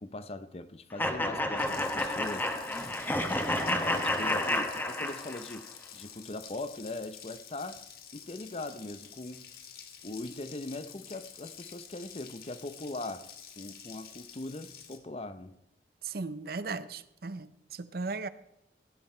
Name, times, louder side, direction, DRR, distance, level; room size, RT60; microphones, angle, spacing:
voice 1, 0.0-2.5 3.8-7.8 8.1-9.5 10.0-13.3 13.6-15.6, left 2 dB, 35° left, 0.7 m, -40 dB
sound 1, 1.0-5.6, left 1 dB, 10° left, 1.0 m, -30 dB
Water tap faucet, 1.6-15.0, left 8 dB, 55° left, 1.5 m, -49 dB
voice 2, 3.5-4.0 16.0-18.3, right 4 dB, 55° right, 0.6 m, -37 dB
16.5 x 9.5 x 4.4 m
head